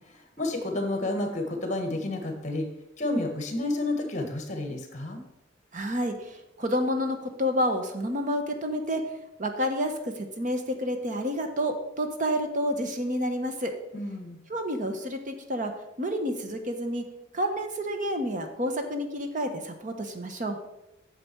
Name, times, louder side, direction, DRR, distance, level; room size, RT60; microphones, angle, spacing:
voice 1, 0.1-2.7 3.0-5.2 13.9-14.4, left 2 dB, 35° left, 4 dB, 1.6 m, -30 dB
voice 2, 5.7-9.0 9.4-13.7 14.5-15.7 16.0-17.0 17.3-20.6, equal, 40° right, 6 dB, 1.1 m, -29 dB
9.0 x 7.0 x 4.6 m, 0.90 s
head